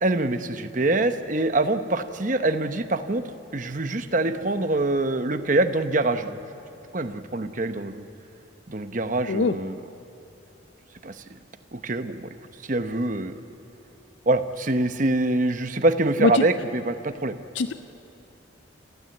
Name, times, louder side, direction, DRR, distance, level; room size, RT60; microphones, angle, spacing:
voice 1, 0.0-3.2 3.5-6.4 6.9-8.1 8.7-9.8 11.0-11.4 11.7-12.3 12.6-13.4 14.3-17.4, right 2 dB, 40° right, 9 dB, 0.9 m, -25 dB
voice 2, 9.3-9.5 16.2-16.4 17.6-17.7, left 3 dB, 65° left, 11 dB, 0.5 m, -21 dB
28.0 x 15.5 x 7.8 m, 3.0 s
head